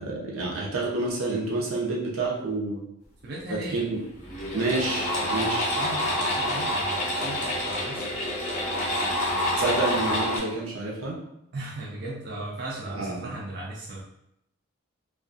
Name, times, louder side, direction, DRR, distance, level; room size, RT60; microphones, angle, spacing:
voice 1, 0.0-2.8 3.5-4.0 4.5-5.8 9.6-11.2 12.9-13.3, right 2 dB, 85° right, -3 dB, 0.7 m, -28 dB
voice 2, 3.2-3.9 5.8-8.1 11.5-14.0, right 1 dB, 50° right, -5 dB, 0.4 m, -37 dB
sound 1, 3.7-3.8 4.2-10.4, left 1 dB, 35° left, 0.5 m, -27 dB
2.4 x 2.3 x 2.5 m, 0.78 s
head